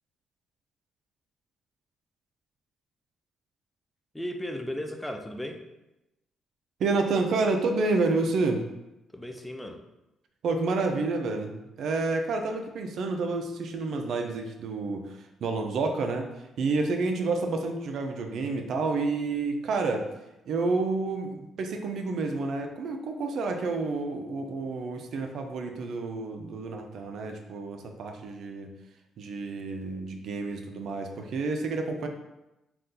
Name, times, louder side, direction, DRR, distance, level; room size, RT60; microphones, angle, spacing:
voice 1, 4.1-5.6 9.1-9.8, equal, 5° left, 5 dB, 0.4 m, -35 dB
voice 2, 6.8-8.6 10.4-16.3 16.6-20.1 20.5-28.7 29.2-32.1, right 3 dB, 70° right, 4 dB, 0.4 m, -29 dB
2.7 x 2.3 x 3.6 m, 0.94 s
cardioid pair, 90°, 0 cm